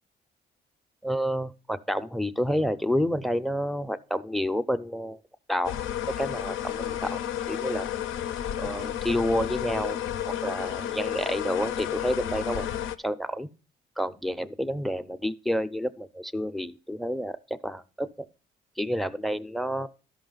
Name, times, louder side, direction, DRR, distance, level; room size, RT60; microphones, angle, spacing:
voice 1, 1.0-5.2 5.5-5.8 6.2-7.2 7.5-7.9 8.6-10.0 10.3-12.7 13.0-13.5 14.0-17.4 17.6-18.1 18.8-19.9, equal, ahead, 14 dB, 0.5 m, -29 dB
sound 1, 5.6-13.0, left 10 dB, 80° left, 0.5 m, -32 dB
12.5 x 5.6 x 3.9 m, 0.34 s
cardioid pair, 90°, 20 cm